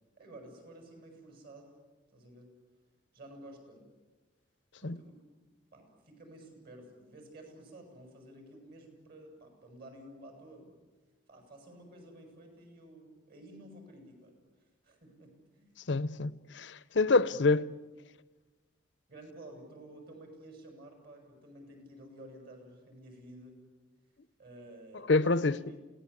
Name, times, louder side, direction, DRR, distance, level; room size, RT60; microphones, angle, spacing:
voice 1, 0.2-1.7 2.1-2.5 3.1-3.9 4.8-5.2 5.7-10.7 11.3-14.3 14.8-15.7 17.1-17.4 19.1-23.6 24.4-25.8, right 1 dB, 55° right, 7.4 m, -52 dB
voice 2, 15.9-17.6 25.1-25.6, left 3 dB, 65° left, 0.8 m, -26 dB
28.5 x 18.0 x 8.6 m
head